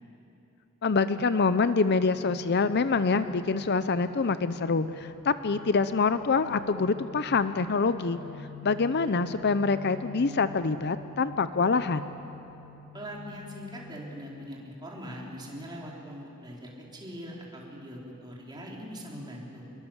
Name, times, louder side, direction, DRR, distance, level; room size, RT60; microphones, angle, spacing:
voice 1, 0.8-8.2 8.6-12.1, left 4 dB, 50° left, 12 dB, 0.6 m, -25 dB
sound 1, 1.9-15.0, left 4 dB, 5° right, 3.9 m, -47 dB
voice 2, 12.9-19.6, equal, 20° right, -3 dB, 4.0 m, -41 dB
26.0 x 22.0 x 7.3 m, 3.0 s
head